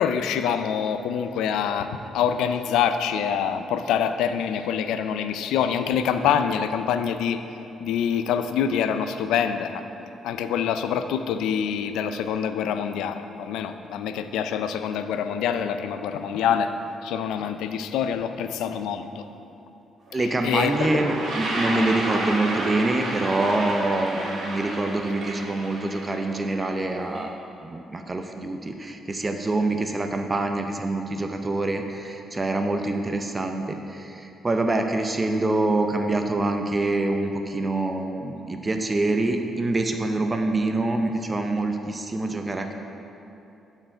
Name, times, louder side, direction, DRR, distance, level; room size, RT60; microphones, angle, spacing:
voice 1, 0.0-7.4 7.8-9.8 10.2-16.7 17.0-19.2 20.4-20.9, left 8 dB, 90° left, 9 dB, 0.4 m, -25 dB
voice 2, 20.1-27.3 27.6-42.7, right 2 dB, 25° right, 5 dB, 0.5 m, -25 dB
Toilet flush, 20.1-20.2 20.4-27.2, right 1 dB, 60° right, 1.9 m, -31 dB
11.5 x 4.5 x 4.5 m, 2.9 s
cardioid pair, 90°, 0 cm